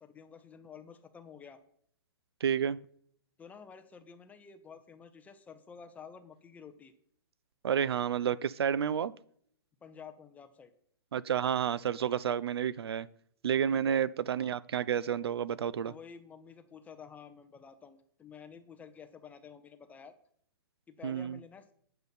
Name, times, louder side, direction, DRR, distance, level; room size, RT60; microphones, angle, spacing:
voice 1, 0.0-1.6 3.4-6.9 9.8-10.7 13.7-14.0 15.8-20.1 20.9-21.7, left 6 dB, 10° left, 9 dB, 0.7 m, -51 dB
voice 2, 2.4-2.8 7.6-9.1 11.1-13.1 13.4-15.9 21.0-21.4, right 8 dB, 80° right, 18 dB, 0.4 m, -30 dB
8.0 x 6.8 x 4.1 m, 0.63 s
hypercardioid pair, 130°, 13 cm